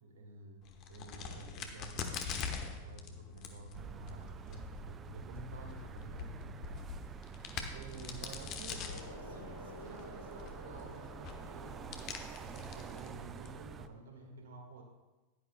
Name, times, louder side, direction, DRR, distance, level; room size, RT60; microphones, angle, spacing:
voice 1, 0.0-7.2 7.7-8.9 9.2-12.0 12.4-14.8, right 3 dB, 60° right, 2 dB, 1.6 m, -51 dB
Crack, 0.6-13.9, left 6 dB, 35° left, 1.0 m, -45 dB
sound 1, 3.7-13.9, right 7 dB, 25° right, 0.3 m, -48 dB
sound 2, 8.8-14.3, left 2 dB, 80° left, 0.9 m, -53 dB
15.0 x 11.0 x 2.2 m, 1.1 s
figure-of-eight pair, 90°, 0 cm